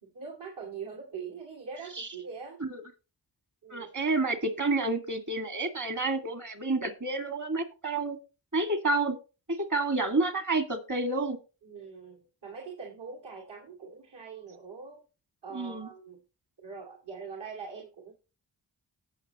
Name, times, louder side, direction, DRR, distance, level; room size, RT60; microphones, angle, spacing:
voice 1, 0.0-2.6 3.6-3.9 11.6-15.0 15.4-16.2 16.6-18.1, right 5 dB, 65° right, -3 dB, 2.7 m, -43 dB
voice 2, 3.7-8.2 8.5-9.2 9.5-11.4 15.5-15.9, right 2 dB, 40° right, 7 dB, 2.2 m, -29 dB
17.5 x 6.0 x 3.0 m, 0.32 s
cardioid pair, 55°, 45 cm